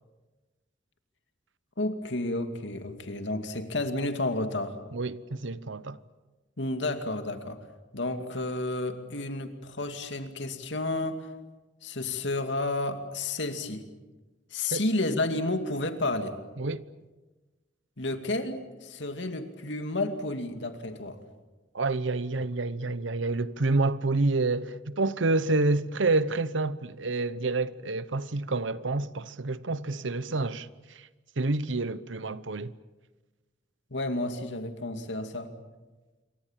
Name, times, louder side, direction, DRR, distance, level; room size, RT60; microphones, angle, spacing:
voice 1, 1.8-4.8 6.6-7.6 7.9-11.3 11.8-13.8 14.5-16.4 18.0-21.2 33.9-35.5, left 2 dB, 75° left, 2.4 m, -31 dB
voice 2, 4.9-6.0 14.7-14.8 16.6-16.8 21.7-30.7 31.4-32.7, right 3 dB, 85° right, 1.0 m, -28 dB
27.0 x 24.0 x 7.5 m
head